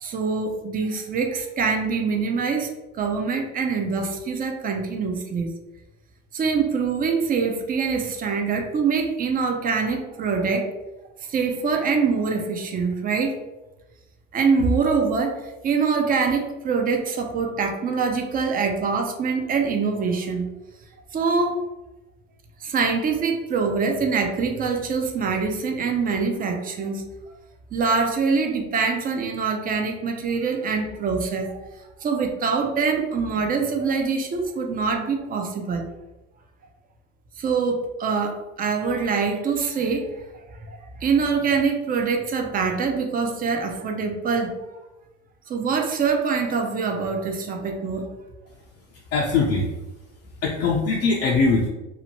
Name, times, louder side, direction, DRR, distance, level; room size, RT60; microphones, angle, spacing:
voice 1, 0.0-2.7 3.0-5.5 6.3-10.7 11.3-13.4 14.3-20.5 21.1-21.6 22.6-27.0 27.7-31.6 32.0-35.9 37.4-40.2 40.7-44.5 45.5-48.1, right 5 dB, 25° right, 4 dB, 0.4 m, -24 dB
voice 2, 48.9-49.7 50.4-51.7, left 4 dB, 40° left, -2 dB, 0.4 m, -21 dB
2.8 x 2.1 x 2.7 m, 1.1 s
supercardioid pair, 95°, 40 cm